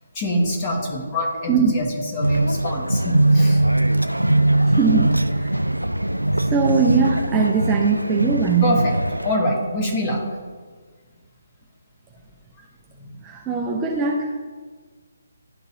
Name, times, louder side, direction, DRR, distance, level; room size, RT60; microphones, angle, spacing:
voice 1, 0.1-3.6 8.6-8.9 9.2-10.3, left 1 dB, 25° left, -1 dB, 1.5 m, -24 dB
sound 1, 2.2-9.4, right 1 dB, 90° right, 0.3 m, -20 dB
voice 2, 4.8-5.5 6.5-8.8 13.0-14.4, right 5 dB, 15° right, -2 dB, 0.6 m, -21 dB
11.5 x 3.8 x 2.8 m, 1.5 s
figure-of-eight pair, 140°, 0 cm